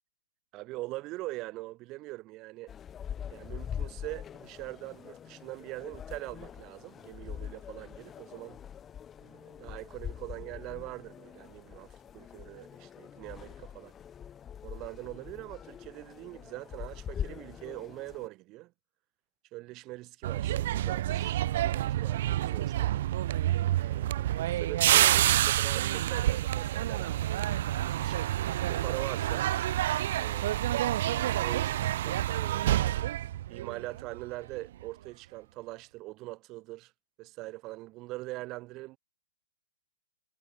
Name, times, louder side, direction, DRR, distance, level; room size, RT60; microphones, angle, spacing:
voice 1, 0.5-2.7 3.3-8.6 9.2-13.9 14.6-18.7 19.5-22.9 23.6-29.5 30.2-32.9 33.5-36.9 37.2-39.0, right 20 dB, 25° right, 5.8 m, -43 dB
sound 1, 2.7-18.3, left 8 dB, 15° left, 3.0 m, -43 dB
sound 2, 20.2-34.2 34.5-34.8, right 13 dB, 50° right, 0.6 m, -28 dB
hypercardioid pair, 160°, 0 cm